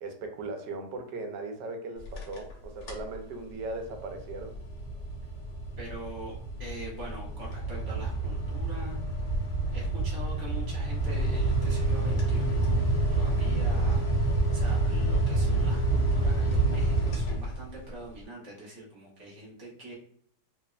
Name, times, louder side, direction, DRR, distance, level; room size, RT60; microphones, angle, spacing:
voice 1, 0.0-4.5, right 2 dB, 80° right, 4 dB, 1.2 m, -38 dB
sound 1, 2.0-2.5 2.8-3.2 3.6-17.9, right 2 dB, 75° left, 1.5 m, -28 dB
voice 2, 5.8-6.3 6.6-9.0 9.7-19.9, right 2 dB, 25° right, -5 dB, 0.5 m, -43 dB
3.3 x 2.0 x 2.3 m, 0.64 s
omnidirectional pair, 1.9 m